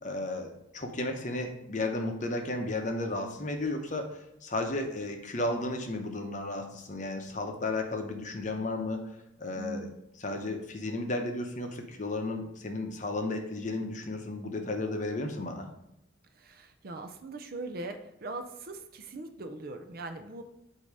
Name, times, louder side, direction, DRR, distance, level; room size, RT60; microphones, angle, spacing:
voice 1, 0.0-9.0 9.4-9.9 10.2-15.6, left 2 dB, 40° left, 4 dB, 0.8 m, -33 dB
voice 2, 9.5-10.0 16.4-20.4, right 2 dB, 50° right, 7 dB, 0.5 m, -40 dB
8.3 x 2.8 x 4.8 m, 0.84 s
head